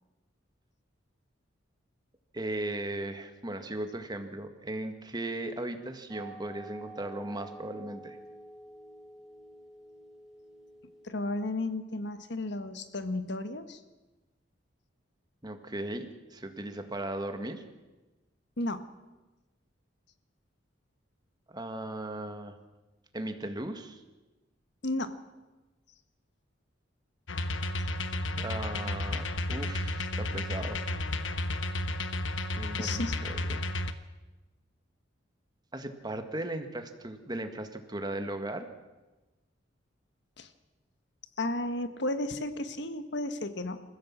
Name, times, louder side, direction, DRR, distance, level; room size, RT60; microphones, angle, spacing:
voice 1, 2.3-8.2 15.4-17.6 21.5-22.6 23.1-24.0 28.3-30.8 32.6-33.6 35.7-38.7, right 1 dB, 20° right, 7 dB, 1.8 m, -37 dB
sound 1, 6.1-11.5, right 2 dB, ahead, 4.4 m, -49 dB
voice 2, 11.0-13.8 18.6-18.9 24.8-25.2 32.8-33.2 40.4-40.5 41.4-43.8, left 2 dB, 65° left, 10 dB, 1.5 m, -33 dB
sound 2, 27.3-33.9, left 1 dB, 85° left, 1.2 m, -32 dB
27.5 x 15.0 x 7.5 m, 1.1 s
head